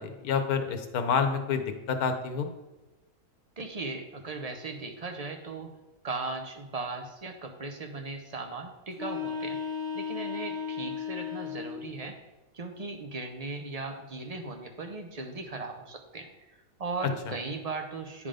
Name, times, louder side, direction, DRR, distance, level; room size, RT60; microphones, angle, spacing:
voice 1, 0.0-2.5, left 6 dB, 85° left, 7 dB, 1.3 m, -28 dB
voice 2, 3.6-5.7 6.0-9.6 9.9-12.2 12.5-16.3 16.8-18.3, right 3 dB, 35° right, 4 dB, 0.7 m, -37 dB
sound 1, 8.9-11.9, left 6 dB, 5° left, 1.4 m, -35 dB
10.0 x 3.7 x 5.0 m, 1.1 s
omnidirectional pair, 1.5 m